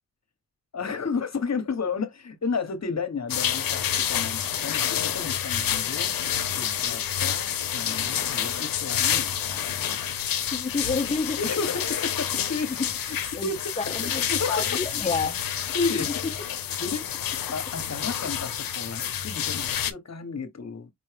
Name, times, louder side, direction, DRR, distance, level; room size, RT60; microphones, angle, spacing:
voice 1, 0.7-6.1 6.6-9.3 11.4-12.7 13.1-13.6 13.9-14.0 14.3-14.8 15.7-16.1 16.8-20.9, left 4 dB, 50° left, 1.3 m, -32 dB
sound 1, 3.3-19.9, left 9 dB, 75° left, 0.8 m, -28 dB
voice 2, 10.5-12.1 12.3-12.4 12.8-12.9 13.3-15.4 16.0-16.1, left 4 dB, 20° left, 0.8 m, -30 dB
5.5 x 2.6 x 3.3 m
cardioid pair, 50°, 34 cm